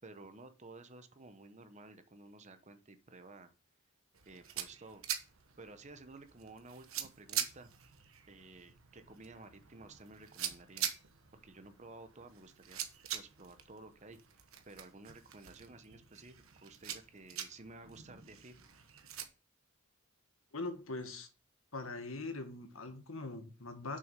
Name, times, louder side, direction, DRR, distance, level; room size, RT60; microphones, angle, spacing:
voice 1, 0.0-3.5 4.2-5.0 5.6-7.7 8.3-10.9 11.4-12.8 13.1-14.2 14.7-18.6, right 2 dB, 35° right, 10 dB, 0.9 m, -54 dB
sound 1, 4.1-19.3, right 10 dB, 80° right, 1.2 m, -44 dB
voice 2, 20.5-21.3 21.7-24.0, left 3 dB, 75° left, 7 dB, 1.5 m, -42 dB
6.9 x 6.1 x 5.3 m, 0.35 s
head